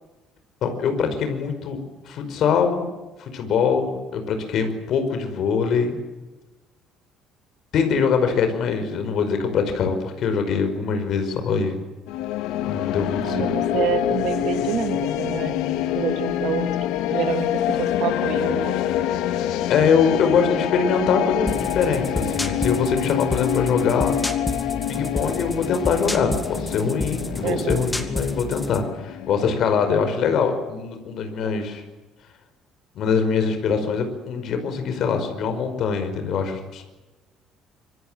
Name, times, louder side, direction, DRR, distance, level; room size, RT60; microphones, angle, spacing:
voice 1, 0.6-1.8 2.1-2.9 3.2-6.0 7.7-11.8 12.6-13.5 19.7-24.1 24.7-31.8 33.0-36.8, left 6 dB, 45° left, 7 dB, 5.3 m, -23 dB
sound 1, 12.1-30.3, left 11 dB, 90° left, 1.9 m, -26 dB
voice 2, 13.2-15.6 16.0-16.7 17.1-18.8 27.4-27.9 31.4-31.5, right 10 dB, 60° right, 9 dB, 2.0 m, -27 dB
sound 2, 21.5-28.9, left 1 dB, 5° left, 2.1 m, -30 dB
26.0 x 24.5 x 7.7 m, 1.1 s
cardioid pair, 175°, 0 cm